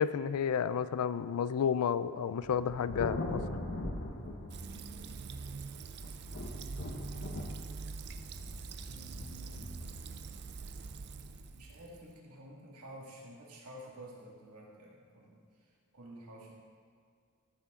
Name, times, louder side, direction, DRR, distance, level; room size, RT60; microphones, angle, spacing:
voice 1, 0.0-3.4, left 7 dB, 75° left, 15 dB, 0.3 m, -31 dB
Thunder, 2.4-5.5 6.0-11.3, left 2 dB, 50° left, 0.9 m, -41 dB
Fill (with liquid), 4.5-12.2, right 4 dB, 50° right, 0.5 m, -44 dB
voice 2, 8.9-9.8 11.5-16.5, right 1 dB, 85° right, -3 dB, 2.2 m, -51 dB
13.5 x 7.0 x 3.8 m, 2.2 s
head